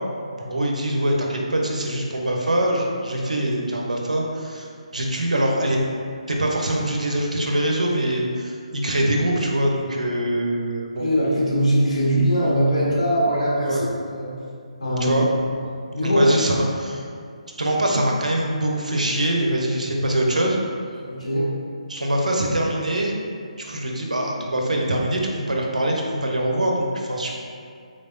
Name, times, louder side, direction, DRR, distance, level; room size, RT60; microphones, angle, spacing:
voice 1, 0.3-5.8 6.3-11.1 13.6-13.8 15.0-15.3 16.0-17.0 17.6-20.6 21.9-23.1 23.6-27.3, right 1 dB, 80° right, -1 dB, 0.7 m, -23 dB
voice 2, 11.0-13.9 14.1-14.3 14.8-15.1 15.9-16.2 21.0-21.5, equal, 65° left, -7 dB, 1.3 m, -21 dB
3.8 x 3.3 x 2.6 m, 2.3 s
figure-of-eight pair, 145°, 4 cm